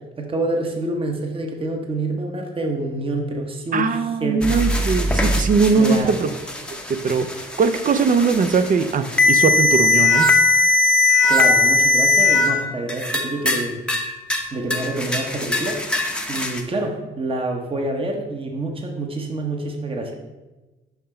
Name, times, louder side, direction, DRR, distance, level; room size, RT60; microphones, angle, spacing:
voice 1, 0.2-4.6 5.8-6.2 11.3-13.8 14.5-15.8 16.3-20.1, right 2 dB, 25° right, 2 dB, 1.0 m, -27 dB
voice 2, 3.7-6.3 6.9-7.3 7.6-10.3, right 5 dB, 45° right, 11 dB, 0.6 m, -20 dB
sound 1, 4.4-12.5 12.9-13.6 13.9-14.4 14.7-16.6, left 3 dB, 5° left, 0.8 m, -19 dB
5.8 x 5.6 x 4.3 m, 1.1 s
cardioid pair, 90°, 20 cm